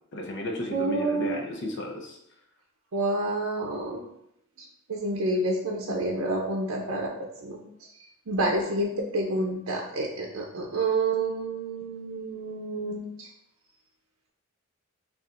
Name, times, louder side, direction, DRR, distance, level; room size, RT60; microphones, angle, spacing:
voice 1, 0.1-2.2, left 1 dB, 60° left, 2 dB, 0.7 m, -34 dB
voice 2, 0.7-1.4 2.9-4.0 4.9-7.1 7.4-7.6 8.3-13.3, right 2 dB, 85° right, -1 dB, 0.6 m, -28 dB
6.6 x 2.4 x 2.5 m, 0.80 s
head